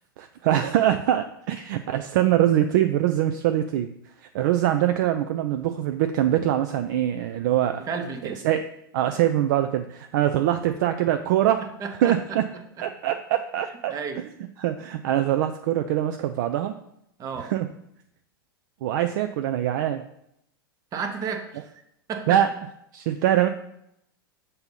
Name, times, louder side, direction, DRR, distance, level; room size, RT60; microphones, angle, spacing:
voice 1, 0.2-3.9 4.2-7.8 8.2-8.6 8.9-11.6 12.0-12.5 12.8-14.3 14.6-16.8 17.4-17.7 18.8-20.0 22.3-22.5 22.9-23.5, right 12 dB, 50° right, 8 dB, 0.3 m, -23 dB
voice 2, 7.8-8.4 11.6-12.4 13.9-14.2 17.2-17.5 20.9-21.7 22.1-22.4, right 5 dB, 30° right, 6 dB, 0.8 m, -32 dB
6.7 x 2.7 x 5.4 m, 0.78 s
figure-of-eight pair, 90°, 12 cm